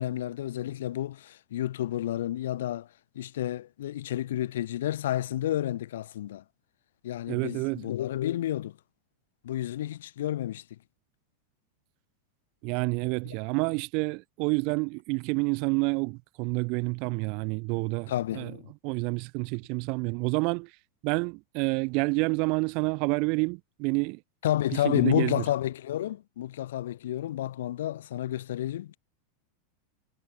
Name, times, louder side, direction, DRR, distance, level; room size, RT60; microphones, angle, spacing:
voice 1, 0.0-2.9 3.1-6.4 7.0-8.8 9.4-10.6 13.2-13.3 18.1-18.7 24.4-29.0, left 12 dB, 85° left, 4.2 m, -30 dB
voice 2, 7.3-7.9 12.6-18.5 18.8-20.7 21.0-24.2 24.8-25.3, right 32 dB, 45° right, 3.2 m, -28 dB
supercardioid pair, 160°, 0 cm